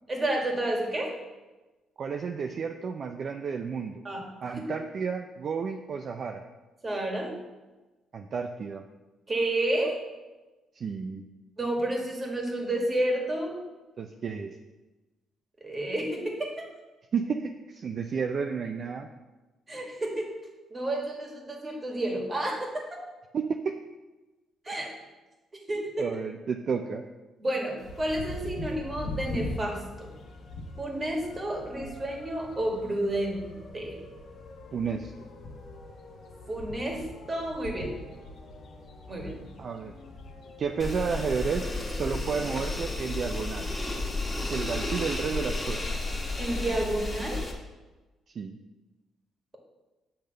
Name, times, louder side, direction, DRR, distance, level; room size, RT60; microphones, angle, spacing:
voice 1, 0.1-1.2 4.0-4.5 6.8-7.3 9.3-10.0 11.6-13.6 15.6-16.6 19.7-20.3 20.7-23.0 24.7-24.9 25.7-26.1 27.4-30.1 30.8-34.0 36.5-38.0 39.1-39.4 46.4-47.4, right 1 dB, 30° right, 0 dB, 1.9 m, -30 dB
voice 2, 2.0-4.0 4.4-6.4 8.1-8.8 10.7-11.2 14.0-14.6 17.1-19.1 23.3-23.8 26.0-27.0 34.7-35.3 39.6-39.9 40.6-43.7 44.5-46.0 48.3-48.6, right 5 dB, 55° right, 4 dB, 0.4 m, -32 dB
sound 1, 27.8-43.1, left 2 dB, 60° left, 1.1 m, -42 dB
sound 2, 40.8-47.5, left 2 dB, 15° left, 1.6 m, -32 dB
7.9 x 3.5 x 6.5 m, 1.2 s
cardioid pair, 90°, 0 cm